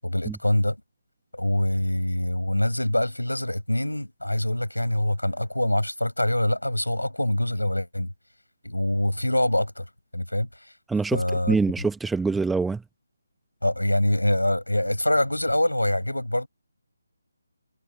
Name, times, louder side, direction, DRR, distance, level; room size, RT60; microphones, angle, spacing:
voice 1, 0.0-0.8 1.3-8.1 8.6-9.9 10.1-10.5 11.1-11.6 13.6-16.5, left 1 dB, 80° left, 7.9 m, -24 dB
voice 2, 10.9-12.8, right 4 dB, 5° right, 1.4 m, -25 dB
figure-of-eight pair, 150°, 0 cm